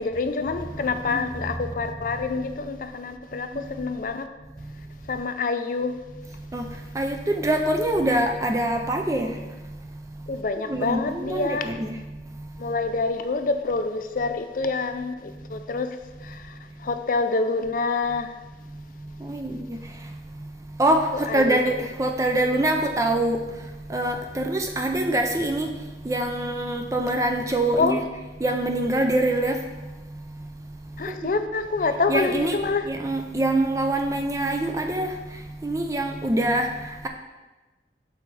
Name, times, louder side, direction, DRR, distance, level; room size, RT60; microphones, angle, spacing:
voice 1, 0.0-4.2 5.1-6.0 10.3-11.7 12.6-16.0 16.3-16.4 16.8-18.3 21.3-21.6 27.8-28.0 31.0-32.9, left 3 dB, 50° left, 8 dB, 0.4 m, -26 dB
voice 2, 7.0-9.3 10.7-11.9 19.2-19.8 20.8-21.1 21.3-23.4 23.9-25.7 26.1-28.0 28.4-29.6 31.2-31.3 32.1-32.5 32.9-35.1 35.6-36.7, right 1 dB, 20° right, 4 dB, 0.4 m, -24 dB
6.4 x 4.6 x 4.1 m, 1.1 s
head